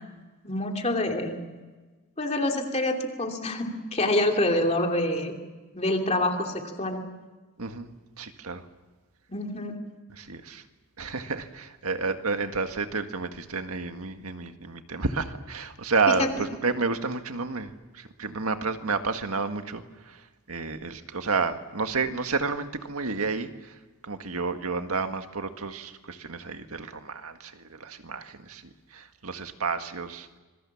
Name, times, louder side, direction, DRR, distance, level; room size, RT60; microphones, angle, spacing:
voice 1, 0.4-1.4 2.2-5.4 5.7-7.1 9.3-9.8 16.1-16.3, left 1 dB, 30° left, 3 dB, 2.9 m, -26 dB
voice 2, 7.6-8.6 10.1-10.6 11.0-20.2 20.5-23.8 24.0-28.6 28.9-30.4, right 4 dB, 85° right, 7 dB, 1.8 m, -30 dB
27.0 x 23.0 x 7.2 m, 1.3 s
head